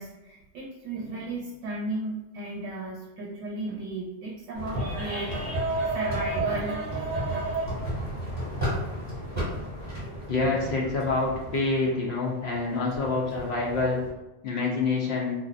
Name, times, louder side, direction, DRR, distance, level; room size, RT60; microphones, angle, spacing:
voice 1, 0.0-7.6, right 2 dB, 90° right, -3 dB, 0.9 m, -32 dB
sound 1, 4.5-14.1, equal, 15° left, 1.1 m, -34 dB
voice 2, 10.3-14.0 14.4-15.3, left 3 dB, 65° left, -3 dB, 0.7 m, -27 dB
2.5 x 2.2 x 2.4 m, 0.98 s
omnidirectional pair, 1.3 m